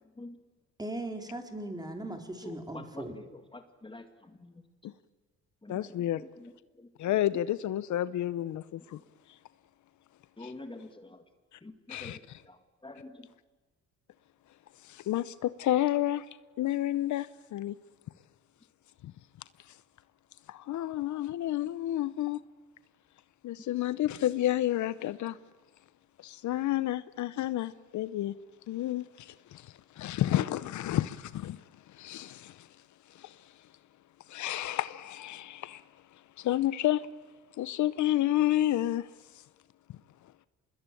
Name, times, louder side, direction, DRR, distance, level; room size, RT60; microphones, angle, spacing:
voice 1, 0.8-3.2, right 1 dB, 15° right, 4.2 m, -38 dB
voice 2, 2.4-4.6 5.6-6.9 7.3-7.4 10.4-11.2 11.6-13.3, left 2 dB, 15° left, 2.1 m, -47 dB
voice 3, 5.7-6.2 7.0-9.0 10.4-10.5 11.9-12.4 14.8-16.2 16.6-17.8 19.0-19.1 20.5-22.4 23.4-25.4 26.2-28.4 28.7-31.6 31.9-32.7 33.1-33.4 34.3-35.8 36.4-37.1 37.6-39.1, left 13 dB, 75° left, 0.8 m, -30 dB
25.0 x 21.0 x 9.2 m
cardioid pair, 90°, 30 cm